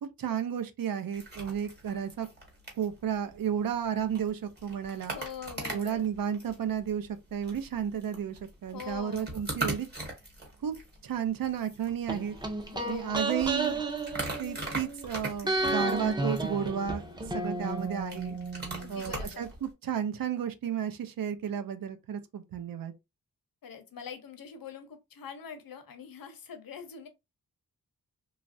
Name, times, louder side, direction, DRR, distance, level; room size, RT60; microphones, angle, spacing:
voice 1, 0.0-2.3 2.8-5.2 5.7-9.9 10.6-10.7 11.0-12.4 12.9-13.8 14.4-18.4 18.9-22.9, right 8 dB, 75° right, 0.5 m, -32 dB
sound 1, 1.1-19.7, right 2 dB, 30° right, 1.0 m, -42 dB
voice 2, 5.1-6.1 8.7-9.4 12.7-13.4 18.8-19.4 23.6-27.1, left 7 dB, 80° left, 0.7 m, -44 dB
sound 2, 12.1-15.1 15.4-19.3 19.5-19.6, right 2 dB, 15° right, 0.4 m, -33 dB
3.1 x 2.4 x 2.5 m
wide cardioid pair, 175°, 34 cm